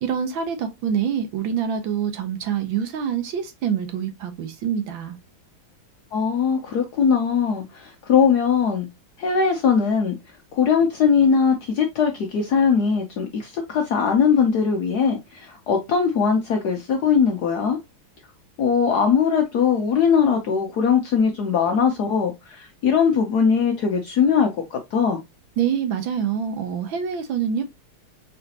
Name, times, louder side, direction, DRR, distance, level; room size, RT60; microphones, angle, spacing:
voice 1, 0.0-5.2 25.6-27.6, right 8 dB, 70° right, 1.4 m, -25 dB
voice 2, 6.1-8.9 9.2-10.1 10.5-17.8 18.6-25.2, left 6 dB, 70° left, 1.0 m, -20 dB
4.1 x 3.9 x 2.8 m
omnidirectional pair, 2.4 m